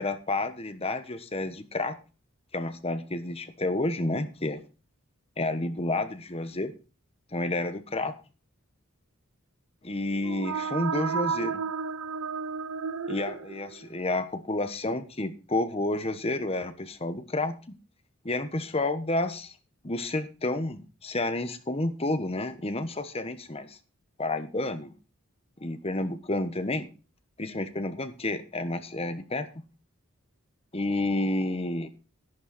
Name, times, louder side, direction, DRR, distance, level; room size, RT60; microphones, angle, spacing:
voice 1, 0.0-2.0 2.5-4.6 5.4-6.7 7.3-8.1 9.8-11.6 13.1-17.6 18.2-19.5 19.8-23.8 24.2-24.9 25.6-26.9 27.4-29.5 30.7-31.9, left 2 dB, 30° left, 10 dB, 1.2 m, -30 dB
sound 1, 10.1-14.0, right 6 dB, 90° right, 0.6 m, -32 dB
11.5 x 10.5 x 4.2 m, 0.33 s
head